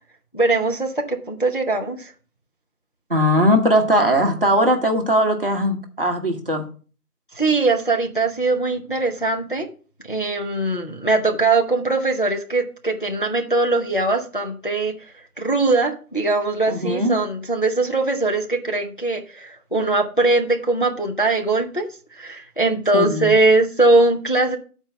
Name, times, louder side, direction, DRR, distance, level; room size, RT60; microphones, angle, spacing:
voice 1, 0.3-2.1 7.3-9.7 10.0-24.6, right 2 dB, 35° left, 3 dB, 0.7 m, -21 dB
voice 2, 3.1-6.7 16.7-17.2 22.9-23.3, equal, 35° right, 2 dB, 1.1 m, -19 dB
8.6 x 4.4 x 5.7 m, 0.39 s
figure-of-eight pair, 175°, 46 cm